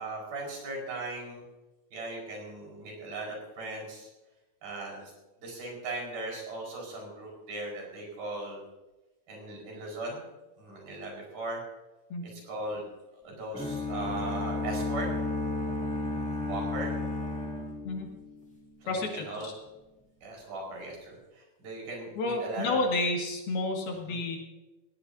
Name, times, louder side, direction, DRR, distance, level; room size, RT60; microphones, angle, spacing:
voice 1, 0.0-1.4 1.9-4.1 4.6-5.1 5.4-8.6 9.3-10.2 10.6-11.6 12.2-12.8 13.2-15.1 16.4-16.9 18.8-19.5 20.2-22.8 24.1-24.2, right 2 dB, 55° right, -1 dB, 6.7 m, -38 dB
sound 1, 13.5-18.5, left 2 dB, 5° left, 1.4 m, -33 dB
voice 2, 18.9-19.5 22.2-24.4, left 2 dB, 65° left, 1 dB, 3.7 m, -30 dB
18.0 x 17.5 x 2.8 m, 1.0 s
omnidirectional pair, 5.0 m